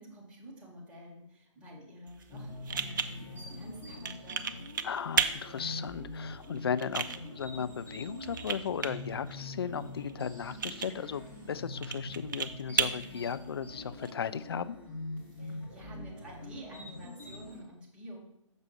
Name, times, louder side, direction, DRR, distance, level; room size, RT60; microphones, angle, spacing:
voice 1, 0.0-4.7 15.4-18.2, equal, 5° right, -7 dB, 1.7 m, -49 dB
sound 1, 2.1-14.1, right 6 dB, 40° right, 0.5 m, -37 dB
sound 2, 2.3-17.6, left 2 dB, 10° left, 1.4 m, -44 dB
voice 2, 4.8-14.8, left 7 dB, 50° left, 13 dB, 0.4 m, -36 dB
6.7 x 6.0 x 3.2 m, 0.76 s
figure-of-eight pair, 135°, 17 cm